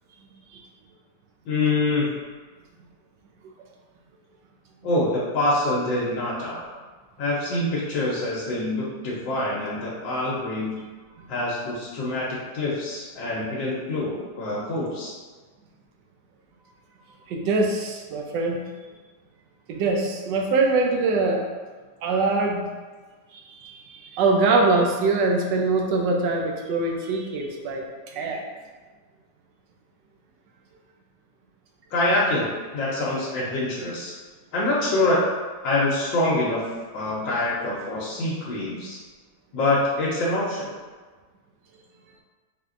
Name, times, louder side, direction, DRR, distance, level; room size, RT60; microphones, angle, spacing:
voice 1, 1.5-2.1 4.8-6.6 7.2-10.8 11.3-15.1 31.9-32.5 32.7-34.1 34.5-35.2 35.6-36.6 36.9-39.0 39.5-40.7, left 2 dB, 85° left, -6 dB, 1.5 m, -25 dB
voice 2, 17.3-18.6 19.7-21.4 22.0-22.7 23.3-28.4, right 3 dB, 75° right, 1 dB, 1.3 m, -23 dB
4.4 x 3.5 x 2.5 m, 1.4 s
omnidirectional pair, 2.0 m